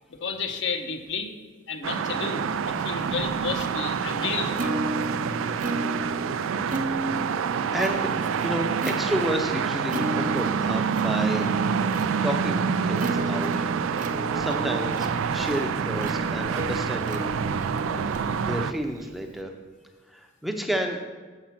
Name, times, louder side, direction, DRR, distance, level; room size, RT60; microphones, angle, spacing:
voice 1, 0.1-1.3 1.7-4.8, left 5 dB, 65° left, 5 dB, 0.9 m, -32 dB
sound 1, 1.8-18.7, right 6 dB, 85° right, 0.4 m, -27 dB
Plucked string instrument, 2.7-19.4, right 2 dB, 40° right, 0.6 m, -35 dB
voice 2, 7.7-8.1 8.4-11.6 12.2-13.7 14.3-18.0 18.4-19.5 20.1-21.0, equal, ahead, 3 dB, 0.7 m, -31 dB
7.4 x 7.3 x 5.8 m, 1.4 s
head